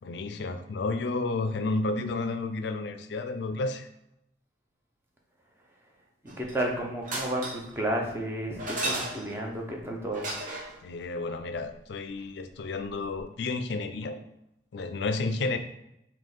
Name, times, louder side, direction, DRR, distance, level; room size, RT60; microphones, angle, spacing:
voice 1, 0.0-3.9 10.8-14.2 14.7-15.6, left 3 dB, 65° left, 8 dB, 0.4 m, -31 dB
voice 2, 6.2-10.3, right 1 dB, 15° right, 0 dB, 0.6 m, -32 dB
sound 1, 6.3-6.7 7.0-7.7 8.6-9.5 10.1-10.8 12.9-13.0 13.2-13.3, right 1 dB, 45° right, 0.9 m, -34 dB
3.6 x 2.8 x 3.9 m, 0.81 s
head